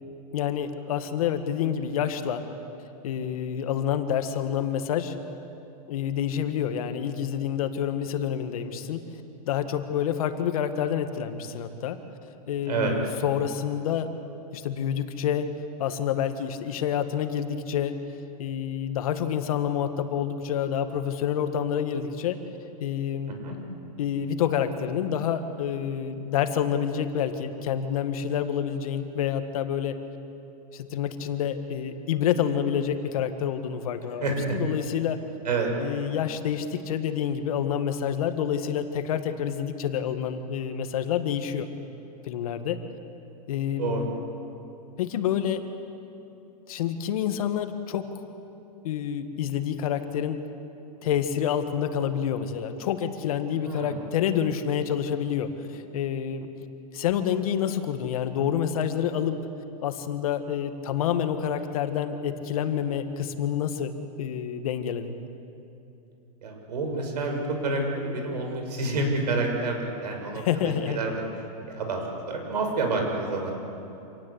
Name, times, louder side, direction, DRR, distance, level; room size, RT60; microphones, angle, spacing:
voice 1, 0.3-2.4 3.0-5.1 5.9-9.0 9.5-12.0 12.5-14.1 14.5-15.5 15.8-18.0 18.4-22.4 22.8-23.3 24.0-30.0 30.7-35.2 35.8-41.7 42.2-42.8 43.5-44.1 45.0-45.6 46.7-48.1 48.8-50.4 51.0-56.5 56.9-59.4 59.8-63.9 64.2-65.1 70.3-71.0, left 9 dB, 60° left, 8 dB, 1.8 m, -28 dB
voice 2, 34.2-34.6 35.4-35.7 43.8-44.1 53.5-54.0 66.4-70.4 70.9-71.2 71.7-73.5, right 3 dB, 90° right, 2 dB, 6.4 m, -28 dB
27.0 x 18.5 x 8.2 m, 2.9 s
supercardioid pair, 160°, 20 cm